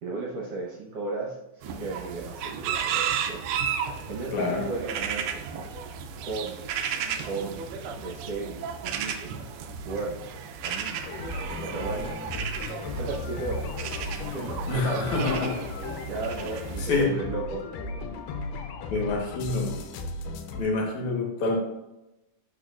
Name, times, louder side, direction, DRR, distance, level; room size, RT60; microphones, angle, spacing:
voice 1, 0.0-1.4 1.6-3.4 4.1-5.5 6.2-6.8 7.2-7.6 8.0-9.5 9.8-10.3 10.6-11.1 11.6-12.1 13.0-13.6 14.2-15.3 16.0-17.6, right 3 dB, 65° right, -2 dB, 1.7 m, -35 dB
sound 1, 1.6-17.0, right 7 dB, 90° right, 1.4 m, -34 dB
voice 2, 4.3-4.7 14.7-15.6 16.8-17.3 18.9-19.8 20.6-21.6, left 3 dB, 70° left, 0 dB, 2.6 m, -27 dB
sound 2, 11.0-20.6, left 2 dB, 90° left, 2.2 m, -35 dB
11.5 x 4.6 x 2.4 m, 0.96 s
omnidirectional pair, 3.6 m